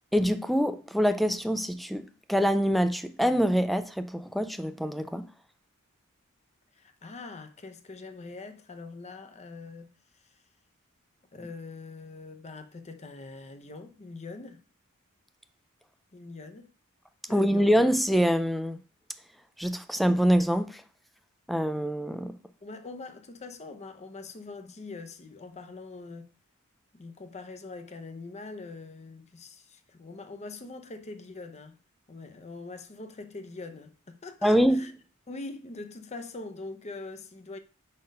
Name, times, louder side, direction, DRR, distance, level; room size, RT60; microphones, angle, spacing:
voice 1, 0.1-5.3 17.3-18.8 19.6-20.8 21.5-22.4 34.4-34.9, equal, ahead, 0.3 m, -25 dB
voice 2, 6.7-10.3 11.3-14.6 16.1-16.7 17.3-17.7 22.6-26.3 26.9-31.8 32.1-34.9 35.3-37.6, left 3 dB, 30° left, 0.6 m, -43 dB
5.1 x 4.3 x 5.2 m
head